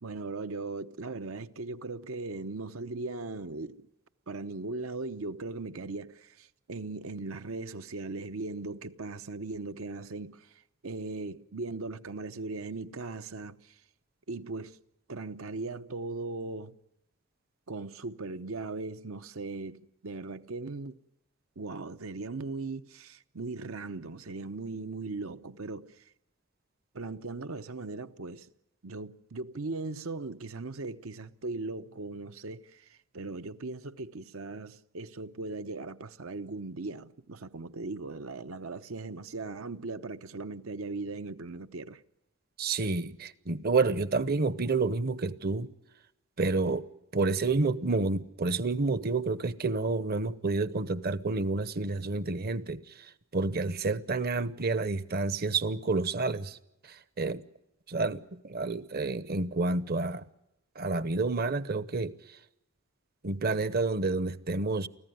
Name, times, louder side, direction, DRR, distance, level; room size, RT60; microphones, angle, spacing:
voice 1, 0.0-3.9 4.3-13.8 14.3-14.8 15.1-16.7 17.7-21.0 21.6-26.0 26.9-28.5 28.8-42.0, right 3 dB, 80° right, 0.9 m, -38 dB
voice 2, 42.6-45.7 46.4-46.9 47.1-56.6 56.8-57.4 57.9-60.2 60.8-62.1 63.2-64.9, right 3 dB, 45° right, 0.9 m, -29 dB
24.5 x 15.5 x 9.4 m
head